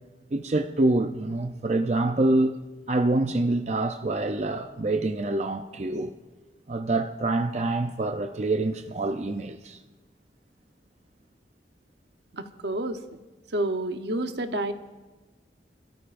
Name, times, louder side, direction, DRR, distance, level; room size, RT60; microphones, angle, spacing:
voice 1, 0.3-2.5 2.9-6.1 6.7-9.8, right 2 dB, 40° right, 0.5 m, -26 dB
voice 2, 12.3-13.0 13.5-14.7, right 1 dB, 75° right, 0.9 m, -29 dB
28.0 x 13.0 x 2.6 m
head